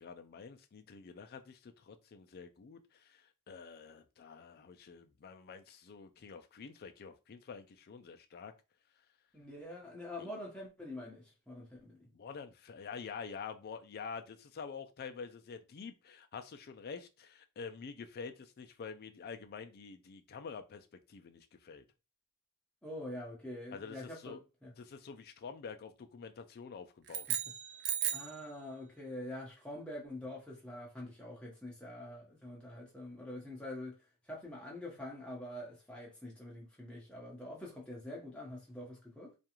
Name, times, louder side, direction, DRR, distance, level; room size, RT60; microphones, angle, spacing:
voice 1, 0.0-8.5 12.1-21.8 23.7-24.4 24.8-27.3, left 5 dB, 45° left, 0.4 m, -47 dB
voice 2, 9.3-12.1 22.8-24.7 27.3-27.4 28.1-34.0 34.3-39.3, left 1 dB, 5° left, 1.0 m, -45 dB
sound 1, 27.1-28.4, right 9 dB, 50° right, 0.3 m, -36 dB
2.4 x 2.3 x 2.9 m
head